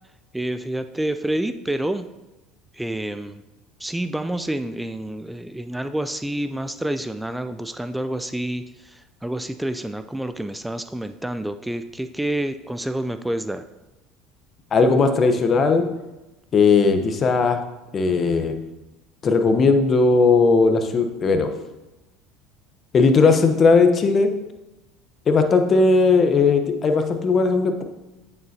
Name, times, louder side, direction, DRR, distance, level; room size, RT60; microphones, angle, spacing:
voice 1, 0.3-2.1 2.7-3.4 3.8-13.6, right 1 dB, 5° right, 10 dB, 0.4 m, -28 dB
voice 2, 14.7-15.9 16.5-17.6 17.9-18.6 19.2-21.5 22.9-24.3 25.3-27.8, left 4 dB, 40° left, 7 dB, 0.9 m, -17 dB
8.8 x 6.8 x 2.8 m, 1.0 s
hypercardioid pair, 85°, 0 cm